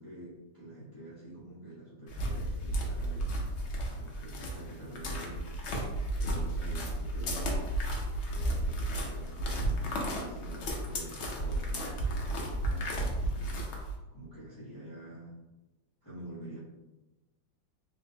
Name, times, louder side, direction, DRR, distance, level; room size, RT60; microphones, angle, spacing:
voice 1, 0.0-3.3 3.9-5.5 6.2-7.5 8.3-13.6 14.1-15.4 16.0-16.6, right 1 dB, 30° left, -11 dB, 0.4 m, -47 dB
sound 1, 2.1-14.0, right 1 dB, 90° left, 0.6 m, -33 dB
3.6 x 2.5 x 2.7 m, 1.1 s
omnidirectional pair, 2.0 m